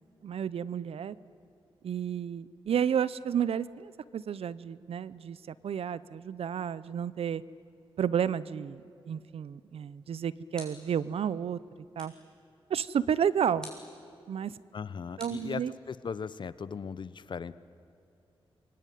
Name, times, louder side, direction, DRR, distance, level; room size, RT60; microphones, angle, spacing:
voice 1, 0.2-1.2 1.8-7.4 8.0-8.8 9.1-11.6 12.0-12.1 12.7-13.7 14.3-14.6 15.2-15.7, right 8 dB, 80° right, 18 dB, 0.7 m, -31 dB
sound 1, 10.5-11.1 12.0-12.3 13.6-14.0 15.2-16.1, left 1 dB, 10° left, 6.9 m, -49 dB
voice 2, 14.7-15.6 15.9-17.5, left 6 dB, 50° left, 16 dB, 0.8 m, -37 dB
27.0 x 23.5 x 9.2 m, 2.7 s
wide cardioid pair, 115°, 10 cm